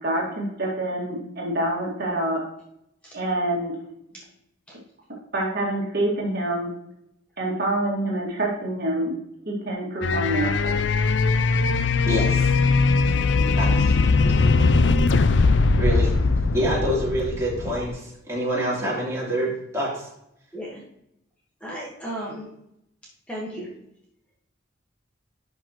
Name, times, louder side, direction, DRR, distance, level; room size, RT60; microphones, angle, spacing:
voice 1, 0.0-2.4 3.1-3.7 5.3-6.7 7.4-9.2 9.5-10.8, right 1 dB, 50° right, -3 dB, 2.1 m, -26 dB
sound 1, 10.0-17.9, left 3 dB, 65° left, 0.5 m, -20 dB
voice 2, 12.0-12.5 13.6-13.9 14.3-14.4 15.8-16.1 16.5-20.1, equal, 15° right, -6 dB, 3.2 m, -26 dB
voice 3, 21.6-22.5 23.3-23.7, equal, 5° left, -5 dB, 1.4 m, -34 dB
11.0 x 5.3 x 3.0 m, 0.79 s
head